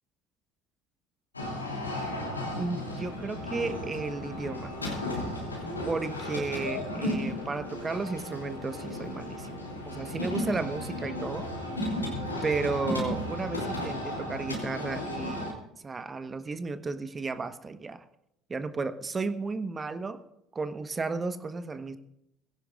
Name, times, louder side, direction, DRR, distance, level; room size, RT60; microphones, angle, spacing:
sound 1, 1.3-15.5, left 1 dB, 90° left, 2.9 m, -34 dB
voice 1, 2.6-4.7 5.8-11.5 12.4-15.5 15.8-18.0 18.5-20.2 20.5-22.0, right 4 dB, 25° right, 10 dB, 1.3 m, -33 dB
20.0 x 16.5 x 2.5 m, 0.80 s
figure-of-eight pair, 60°, 0 cm